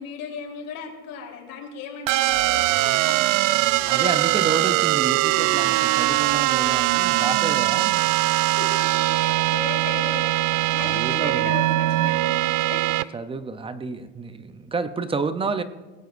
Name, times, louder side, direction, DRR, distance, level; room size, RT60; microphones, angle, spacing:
voice 1, 0.0-3.7 8.0-8.1 8.6-13.2, left 6 dB, 60° left, 1 dB, 3.5 m, -37 dB
sound 1, 2.1-13.0, right 17 dB, 85° right, 0.5 m, -21 dB
voice 2, 3.8-7.9 10.8-11.5 13.1-15.6, right 4 dB, 15° right, 11 dB, 0.5 m, -30 dB
19.0 x 17.0 x 2.5 m, 1.2 s
cardioid pair, 140°, 37 cm